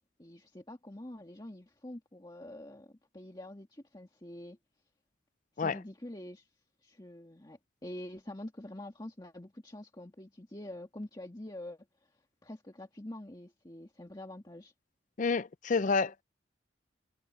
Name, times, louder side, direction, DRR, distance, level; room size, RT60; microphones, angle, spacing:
voice 1, 0.2-4.6 5.6-6.5 6.8-11.8 12.4-14.7, left 1 dB, 20° left, 1.7 m, -46 dB
voice 2, 15.2-16.2, left 4 dB, 40° left, 0.5 m, -29 dB
head